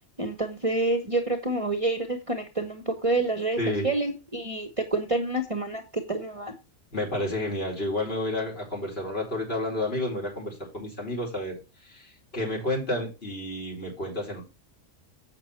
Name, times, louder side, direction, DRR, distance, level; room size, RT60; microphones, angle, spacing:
voice 1, 0.2-3.6 3.8-6.5, right 2 dB, 25° right, 1.2 m, -28 dB
voice 2, 3.6-3.9 6.9-14.4, left 1 dB, 45° left, 5.0 m, -31 dB
8.1 x 6.6 x 4.6 m
omnidirectional pair, 1.4 m